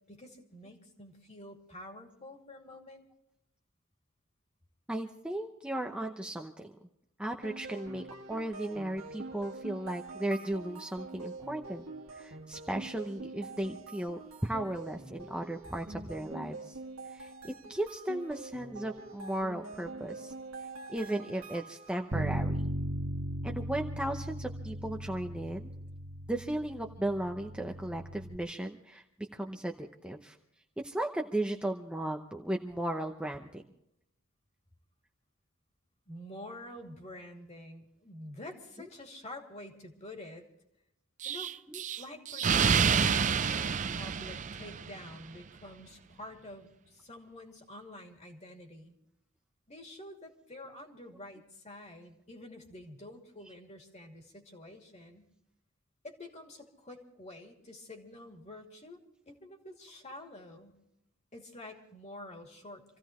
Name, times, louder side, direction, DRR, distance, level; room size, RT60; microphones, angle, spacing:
voice 1, 0.1-3.0 13.2-13.3 36.1-40.5 41.2-41.5 42.0-48.9 49.7-55.3 56.0-59.0 59.3-60.8 61.3-63.0, left 1 dB, 35° left, 2 dB, 2.5 m, -48 dB
voice 2, 4.9-6.7 7.2-11.8 12.1-16.8 17.1-20.3 20.9-22.6 23.4-25.7 26.3-30.4 30.8-33.6 41.7-41.8, right 1 dB, 5° right, 2 dB, 0.7 m, -36 dB
sound 1, 7.4-22.1, right 3 dB, 85° right, 1.6 m, -45 dB
Bass guitar, 22.1-28.4, right 1 dB, 55° right, 0.9 m, -37 dB
Explosion, 41.2-45.1, right 6 dB, 35° right, 0.5 m, -28 dB
27.0 x 15.5 x 3.1 m, 0.79 s
head